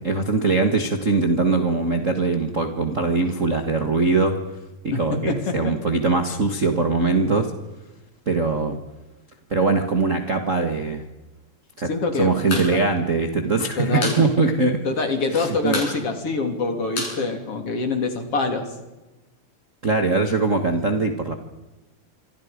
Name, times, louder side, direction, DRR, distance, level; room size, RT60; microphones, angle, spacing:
voice 1, 0.0-4.4 4.8-7.5 8.3-8.8 9.5-11.0 11.8-11.9 12.1-14.8 15.3-15.8 19.8-21.3, right 3 dB, 35° right, 4 dB, 1.4 m, -21 dB
voice 2, 5.3-5.7 11.9-12.6 13.8-14.2 14.8-18.7, left 3 dB, 50° left, 5 dB, 3.8 m, -25 dB
sound 1, 12.5-12.7 13.0-13.1 13.4-14.2 14.6-14.7 14.9-15.3 15.7-18.0, left 2 dB, 85° left, 9.4 m, -30 dB
27.5 x 24.5 x 5.2 m, 1.1 s
omnidirectional pair, 3.6 m